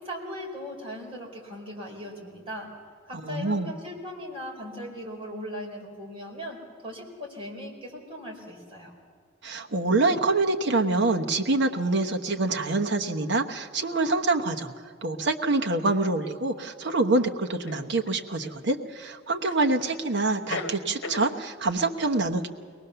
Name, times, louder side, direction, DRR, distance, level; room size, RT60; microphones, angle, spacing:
voice 1, 0.0-2.7 3.1-8.9, equal, 25° right, -2 dB, 4.4 m, -38 dB
voice 2, 3.2-3.7 9.4-14.7 15.0-22.5, right 2 dB, 60° right, 3 dB, 1.1 m, -26 dB
sound 1, 15.9-16.0 17.7-18.6 19.5-20.0 20.3-21.3, left 3 dB, 60° left, 1.4 m, -37 dB
23.0 x 19.0 x 6.9 m, 2.2 s
head